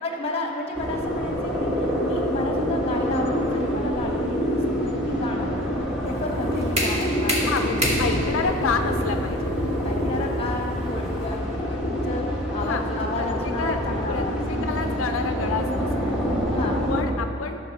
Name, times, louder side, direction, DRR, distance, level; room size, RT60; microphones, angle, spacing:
voice 1, 0.0-5.5 6.0-7.9 8.6-8.8 9.8-14.9 16.5-17.0, left 2 dB, 30° left, 1 dB, 1.2 m, -32 dB
sound 1, 0.8-17.0, equal, 5° right, 1.4 m, -26 dB
sound 2, 6.1-11.8, equal, 35° right, 1.6 m, -30 dB
voice 2, 7.4-9.5 12.6-13.8 14.1-16.2 16.9-17.6, left 5 dB, 75° left, 6 dB, 0.4 m, -29 dB
13.0 x 4.5 x 6.6 m, 2.7 s
head